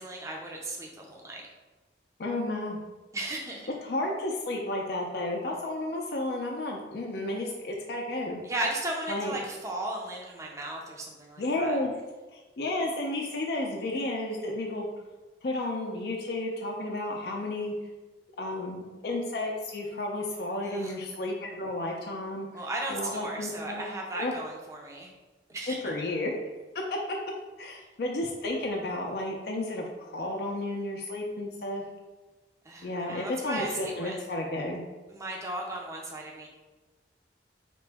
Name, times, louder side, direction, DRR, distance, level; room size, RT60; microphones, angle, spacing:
voice 1, 0.0-1.5 3.1-3.7 8.4-11.8 20.6-20.9 22.5-25.1 25.5-25.8 32.6-34.2 35.1-36.5, right 1 dB, 15° right, -1 dB, 0.5 m, -36 dB
voice 2, 2.2-2.8 3.8-8.4 9.1-9.4 11.4-11.9 12.3-14.9 15.4-17.7 18.4-22.6 22.9-23.8 24.2-24.3 25.7-26.3 27.6-31.8 32.8-34.8, left 2 dB, 60° left, -1 dB, 0.5 m, -32 dB
4.3 x 2.9 x 3.4 m, 1.2 s
head